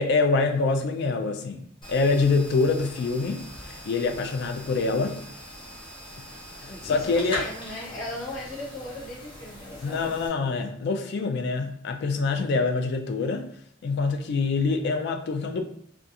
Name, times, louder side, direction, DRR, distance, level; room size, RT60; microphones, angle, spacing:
voice 1, 0.0-1.6 1.9-5.2 6.2-6.3 6.6-7.5 9.8-13.5 13.8-15.6, left 3 dB, 60° left, 5 dB, 0.3 m, -25 dB
sound 1, 1.8-10.3, equal, 25° left, 0.7 m, -41 dB
voice 2, 6.7-10.2, left 1 dB, 85° left, -5 dB, 0.9 m, -37 dB
2.4 x 2.3 x 2.7 m, 0.62 s
head